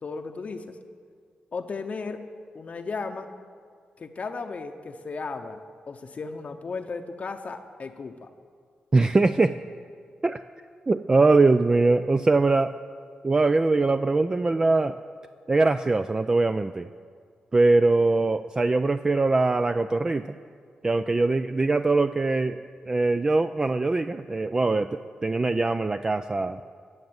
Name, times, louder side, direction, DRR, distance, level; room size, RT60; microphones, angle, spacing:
voice 1, 0.0-0.8 1.5-2.3 2.5-3.3 4.0-8.3, left 4 dB, 50° left, 6 dB, 0.7 m, -35 dB
voice 2, 8.9-9.6 10.2-10.4 10.9-12.7 13.2-15.0 15.5-16.9 17.5-20.3 20.8-26.6, right 3 dB, 25° right, 10 dB, 0.3 m, -22 dB
14.5 x 7.8 x 7.9 m, 2.1 s
cardioid pair, 100°, 3 cm